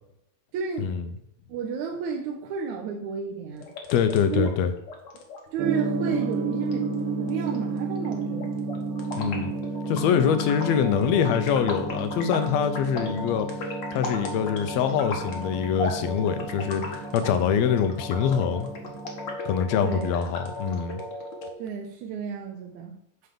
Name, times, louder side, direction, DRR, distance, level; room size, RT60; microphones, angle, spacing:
voice 1, 0.5-0.9 1.5-3.7 4.3-4.5 5.5-6.9 7.2-8.5 19.8-20.1 21.6-22.9, right 6 dB, 70° right, 1 dB, 2.1 m, -32 dB
sound 1, 3.5-21.5, left 1 dB, 60° left, 1.2 m, -37 dB
voice 2, 3.9-4.7 9.1-9.5 9.9-13.5 13.9-18.7 19.4-21.0, left 8 dB, 75° left, 9 dB, 1.6 m, -24 dB
Gong, 5.6-19.3, right 4 dB, 90° right, 3.0 m, -32 dB
9.6 x 3.4 x 6.8 m, 0.74 s
omnidirectional pair, 3.9 m